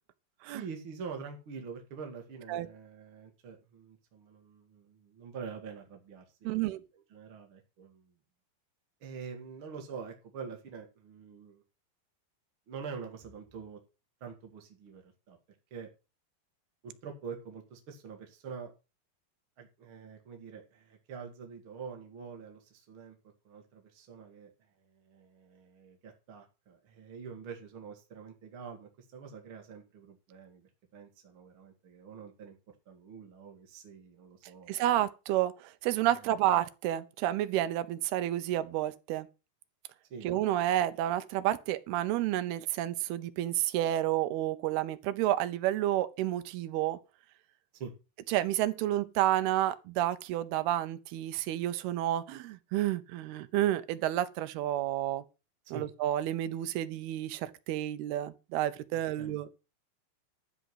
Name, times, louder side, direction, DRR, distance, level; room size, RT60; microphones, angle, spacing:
voice 1, 0.5-6.8 7.1-8.1 9.0-11.6 12.7-13.8 14.2-15.4 15.7-15.9 16.8-18.7 19.6-23.2 23.4-24.5 24.9-32.6 32.9-34.8 36.2-36.5 40.1-40.3 47.7-47.9 55.6-55.8 58.9-59.3, right 6 dB, 45° right, 1.9 m, -46 dB
voice 2, 6.4-6.8 34.7-39.3 40.2-47.0 48.3-55.2 55.7-59.5, right 13 dB, 80° right, 2.7 m, -30 dB
13.0 x 5.1 x 7.9 m
omnidirectional pair, 4.7 m